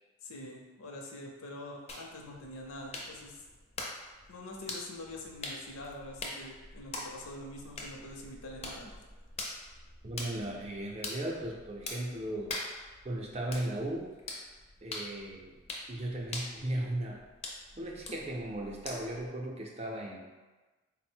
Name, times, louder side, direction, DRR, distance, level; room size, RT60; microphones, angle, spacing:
voice 1, 0.2-3.4 4.3-8.9, left 1 dB, 85° left, 1 dB, 0.6 m, -45 dB
sound 1, 1.9-19.3, left 2 dB, 30° left, 0.4 m, -44 dB
voice 2, 10.0-12.6 13.0-14.1 14.8-15.6 15.9-17.2 17.8-20.3, right 1 dB, 30° right, -1 dB, 0.5 m, -36 dB
3.9 x 2.1 x 4.3 m, 1.2 s
head